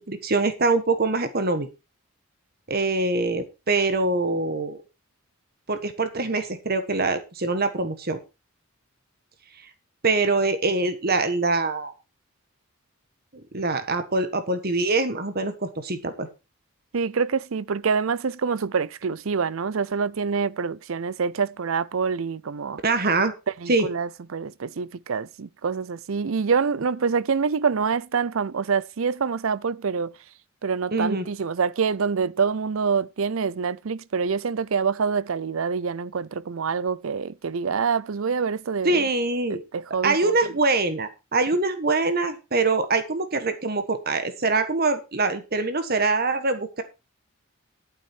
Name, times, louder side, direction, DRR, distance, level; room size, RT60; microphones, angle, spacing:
voice 1, 0.1-1.7 2.7-4.8 5.7-8.2 10.0-11.9 13.5-16.3 22.8-23.3 23.7-23.9 30.9-31.2 38.8-39.6 40.0-46.8, right 3 dB, 45° right, 1.4 m, -24 dB
voice 2, 16.9-22.8 23.6-30.1 30.6-39.0 39.7-40.4, right 5 dB, 70° right, 0.5 m, -26 dB
11.5 x 9.0 x 4.5 m
head